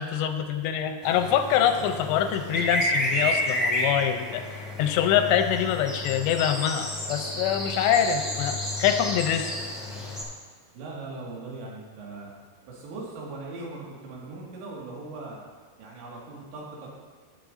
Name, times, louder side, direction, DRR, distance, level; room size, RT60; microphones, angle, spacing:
voice 1, 0.0-9.5, left 9 dB, 90° left, 7 dB, 2.9 m, -25 dB
sound 1, 1.0-10.2, left 1 dB, ahead, 1.0 m, -31 dB
voice 2, 10.7-12.3 12.7-15.4 15.8-16.9, right 3 dB, 90° right, -4 dB, 4.2 m, -39 dB
18.0 x 7.6 x 2.6 m, 1.5 s
omnidirectional pair, 5.0 m